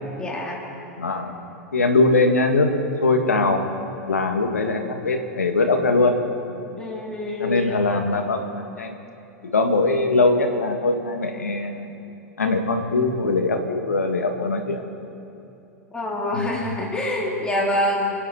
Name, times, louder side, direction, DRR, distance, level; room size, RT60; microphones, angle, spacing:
voice 1, 0.2-0.6 6.5-7.7 15.9-18.1, left 1 dB, 10° left, -3 dB, 2.8 m, -26 dB
voice 2, 1.0-1.3 1.7-2.7 3.0-3.6 4.1-6.2 7.4-8.4 8.8-8.9 9.5-12.0 12.4-14.8 16.3-16.5, left 3 dB, 80° left, 4 dB, 1.9 m, -21 dB
28.5 x 9.9 x 4.5 m, 2.9 s
figure-of-eight pair, 90°, 8 cm